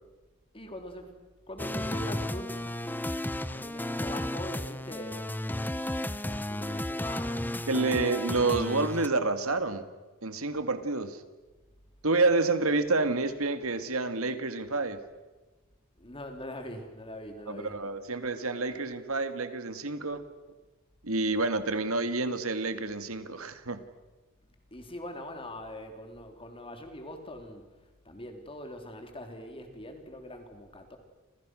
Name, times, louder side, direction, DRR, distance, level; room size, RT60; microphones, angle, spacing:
voice 1, 0.5-1.1 1.5-2.6 3.5-5.3 6.5-7.4 16.0-17.8 24.7-27.6 28.1-31.0, left 1 dB, 25° left, 5 dB, 3.7 m, -42 dB
sound 1, 1.6-9.1, left 1 dB, 10° left, 0.9 m, -33 dB
voice 2, 7.7-9.8 10.2-11.2 12.0-15.0 17.5-20.2 21.0-23.8, right 3 dB, 80° right, 10 dB, 2.0 m, -28 dB
29.5 x 28.0 x 6.4 m, 1.2 s
head